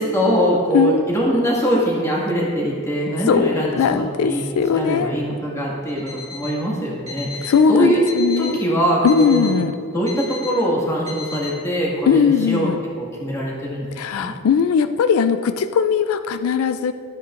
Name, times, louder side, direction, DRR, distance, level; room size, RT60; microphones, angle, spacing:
voice 1, 0.0-4.4 4.7-8.0 8.4-9.6 9.9-12.7 13.0-13.9 14.1-14.3, equal, 15° left, -4 dB, 1.8 m, -22 dB
voice 2, 3.3-5.1 7.5-8.5 9.0-9.7 12.1-12.8 14.0-16.9, left 6 dB, 85° left, 11 dB, 0.4 m, -19 dB
Alarm, 5.9-6.6 7.1-7.6 8.1-8.6 9.1-9.6 10.1-10.6 11.1-11.6, left 5 dB, 30° right, 1.6 m, -35 dB
13.0 x 9.6 x 2.5 m, 2.4 s
head